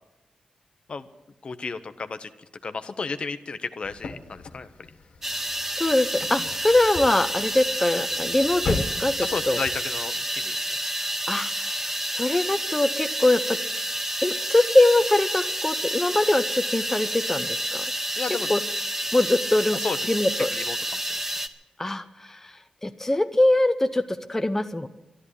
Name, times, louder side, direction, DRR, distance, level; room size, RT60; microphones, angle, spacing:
voice 1, 1.4-2.3 2.6-4.7 6.4-6.5 9.2-10.8 18.2-18.5 19.7-20.0 20.5-21.0, left 4 dB, 50° left, 10 dB, 0.9 m, -33 dB
sound 1, 3.8-9.7, left 3 dB, 65° left, 1.6 m, -37 dB
sound 2, 5.2-21.5, right 1 dB, 15° right, 1.1 m, -29 dB
voice 2, 5.8-9.2 9.5-9.6 11.3-13.6 14.2-17.8 18.5-18.6 19.1-19.8 20.1-20.5 21.8-22.4 22.8-24.9, left 1 dB, 15° left, 8 dB, 0.7 m, -23 dB
12.5 x 11.0 x 10.0 m, 0.94 s
cardioid pair, 80°, 2 cm